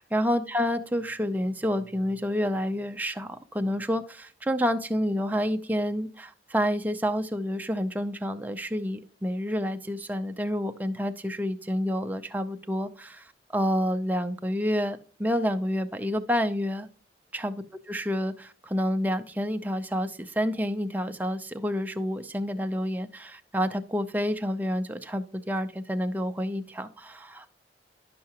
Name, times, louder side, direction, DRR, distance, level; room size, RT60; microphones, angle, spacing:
voice 1, 0.0-16.9 17.3-17.5 17.9-27.5, equal, 10° right, 0.5 m, -29 dB
11.5 x 5.6 x 2.9 m
head